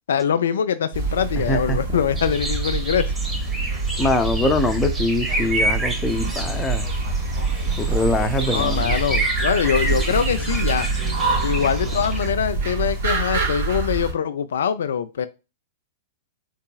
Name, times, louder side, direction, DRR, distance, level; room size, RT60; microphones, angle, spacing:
voice 1, 0.1-3.1 8.5-10.9 11.4-15.3, left 8 dB, 70° left, 0.4 m, -23 dB
sound 1, 0.9-14.1, right 3 dB, 65° right, 2.6 m, -25 dB
voice 2, 1.5-2.2 4.0-6.9 7.8-9.0, left 2 dB, 15° left, 0.7 m, -23 dB
sound 2, 2.2-12.3, right 1 dB, 10° right, 1.2 m, -30 dB
Human voice, 5.3-9.2 9.6-12.3, right 2 dB, 45° right, 2.5 m, -40 dB
4.4 x 4.0 x 2.2 m
figure-of-eight pair, 105°, 0 cm